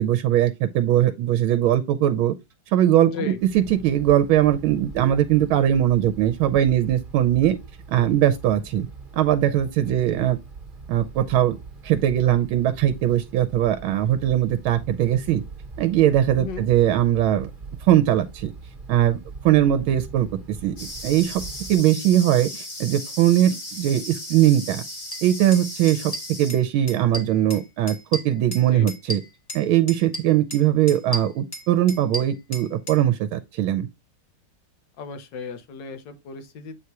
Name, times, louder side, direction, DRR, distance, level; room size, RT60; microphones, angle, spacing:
voice 1, 0.0-2.3 2.7-7.6 7.9-8.9 9.2-10.4 10.9-11.6 11.8-15.4 15.8-17.5 17.8-18.5 18.9-21.4 21.7-24.8 25.2-26.1 26.4-29.2 29.5-33.9, right 12 dB, 85° right, 1.5 m, -20 dB
voice 2, 3.0-3.4 9.9-10.4 16.4-16.7 28.5-28.9 35.0-36.8, left 5 dB, 65° left, 1.7 m, -36 dB
Wind, 3.3-21.7, right 4 dB, 30° right, 1.5 m, -41 dB
sound 1, 20.8-26.5, left 1 dB, 85° left, 5.3 m, -36 dB
sound 2, 25.1-25.2 25.5-25.6 25.9-26.6 26.9-27.6 27.9-29.6 29.9-30.6 30.9-33.0, equal, 20° left, 1.3 m, -33 dB
8.0 x 2.8 x 4.6 m
omnidirectional pair, 2.3 m